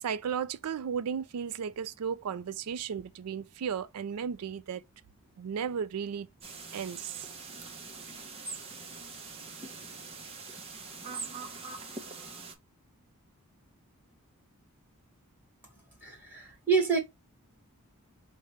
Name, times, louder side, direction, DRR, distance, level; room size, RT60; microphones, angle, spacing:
voice 1, 0.0-4.8 5.4-6.3 6.7-7.3, right 7 dB, 85° right, 0.4 m, -34 dB
sound 1, 6.4-12.5, right 4 dB, 25° right, 0.6 m, -43 dB
voice 2, 15.7-17.0, right 5 dB, 10° right, 1.3 m, -28 dB
5.0 x 2.2 x 3.0 m
head